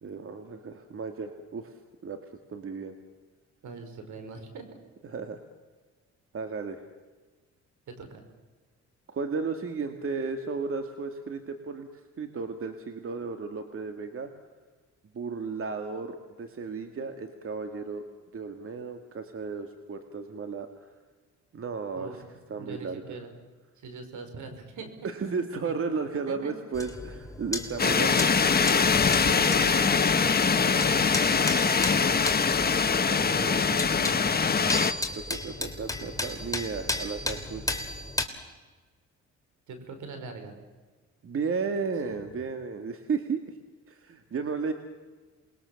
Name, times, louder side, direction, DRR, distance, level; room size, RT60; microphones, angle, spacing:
voice 1, 0.0-1.7 2.0-2.2 2.5-3.0 5.0-5.4 6.3-6.8 9.1-11.9 12.2-14.3 15.1-18.0 18.3-20.9 21.5-22.2 22.5-23.2 25.0-28.3 35.3-37.9 41.2-43.4 43.9-44.7, right 5 dB, 45° right, 7 dB, 2.1 m, -34 dB
voice 2, 3.6-4.6 7.9-8.2 21.9-22.3 22.5-23.3 23.8-24.9 26.1-26.5 27.9-32.5 33.0-34.8 39.7-40.5 42.0-42.4, right 4 dB, 75° right, 7 dB, 5.1 m, -41 dB
sound 1, 26.7-38.3, left 2 dB, 10° left, 3.0 m, -35 dB
sound 2, 27.8-34.9, left 5 dB, 30° left, 1.4 m, -23 dB
27.5 x 21.5 x 7.1 m, 1.4 s
cardioid pair, 90°, 30 cm